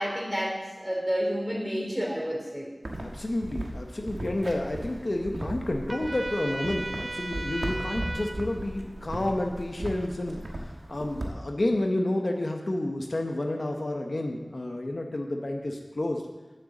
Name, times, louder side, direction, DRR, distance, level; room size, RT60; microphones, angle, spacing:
voice 1, 0.0-2.7, equal, 10° right, -2 dB, 2.9 m, -30 dB
sound 1, 2.8-11.3, right 1 dB, 75° right, 1.2 m, -37 dB
voice 2, 3.0-16.2, left 1 dB, 55° left, 2 dB, 0.8 m, -30 dB
Trumpet, 5.9-8.4, right 2 dB, 50° right, 0.8 m, -35 dB
7.8 x 6.4 x 7.2 m, 1.2 s
wide cardioid pair, 55°, 0 cm